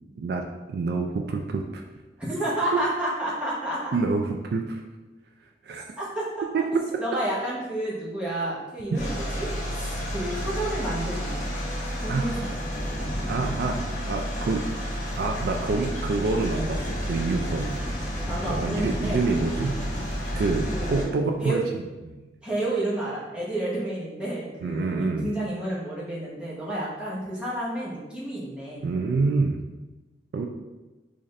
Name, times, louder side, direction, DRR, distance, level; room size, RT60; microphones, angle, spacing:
voice 1, 0.2-1.8 3.9-4.8 5.6-5.8 6.5-6.8 8.9-9.0 12.1-12.3 13.3-14.7 15.2-17.8 18.4-19.8 20.3-21.6 22.1-22.2 24.6-25.3 28.8-29.6 30.3-30.5, right 3 dB, 60° right, 3 dB, 0.3 m, -27 dB
voice 2, 2.3-4.0 6.0-6.2 7.0-11.5 12.0-12.6 18.3-19.2 20.7-21.1 21.4-21.6 22.4-28.8, right 1 dB, 5° right, -7 dB, 1.0 m, -30 dB
sound 1, 8.9-21.0, equal, 45° left, 1.1 m, -31 dB
3.9 x 2.5 x 3.2 m, 1.1 s
head